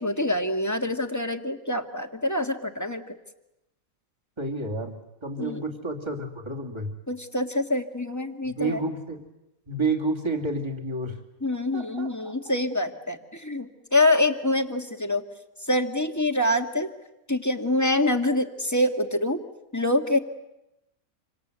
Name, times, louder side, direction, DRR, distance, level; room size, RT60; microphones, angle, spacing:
voice 1, 0.0-3.2 5.4-5.6 7.1-8.8 11.4-15.2 15.6-16.9 17.3-19.5 19.7-20.2, left 1 dB, 10° left, 5 dB, 1.6 m, -25 dB
voice 2, 4.4-6.9 8.5-9.2 9.7-11.2 11.7-12.5, right 2 dB, 20° right, 1 dB, 2.7 m, -30 dB
27.5 x 25.5 x 8.1 m, 0.91 s
omnidirectional pair, 1.5 m